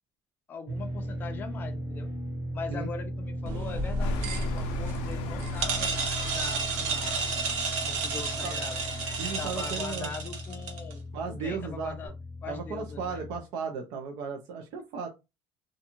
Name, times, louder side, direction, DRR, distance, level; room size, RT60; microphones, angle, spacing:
voice 1, 0.5-2.1 2.5-5.9 6.3-7.4 7.8-8.8 9.4-12.1 12.4-13.3, left 5 dB, 20° left, 5 dB, 0.4 m, -41 dB
sound 1, 0.7-13.4, equal, 30° right, 1.1 m, -38 dB
sound 2, 3.4-10.9, right 3 dB, 90° right, 0.8 m, -32 dB
sound 3, 4.0-9.8, left 2 dB, 85° left, 0.4 m, -40 dB
voice 2, 9.2-10.1 11.1-12.1 12.5-15.1, right 5 dB, 60° right, 2 dB, 0.5 m, -35 dB
2.5 x 2.3 x 2.8 m, 0.25 s
cardioid pair, 165°, 9 cm